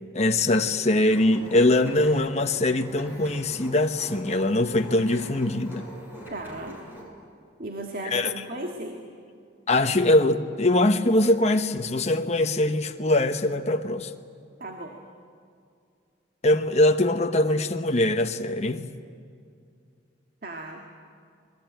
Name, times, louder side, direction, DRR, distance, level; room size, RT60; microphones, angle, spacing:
voice 1, 0.1-5.8 8.1-8.3 9.7-14.1 16.4-18.9, left 1 dB, 35° left, 6 dB, 1.0 m, -22 dB
sound 1, 1.1-7.0, right 1 dB, 10° right, 7.2 m, -43 dB
voice 2, 6.3-6.8 7.6-9.0 14.6-15.0 20.4-20.9, right 1 dB, 55° right, 3 dB, 1.9 m, -36 dB
27.5 x 21.5 x 9.2 m, 2.4 s
head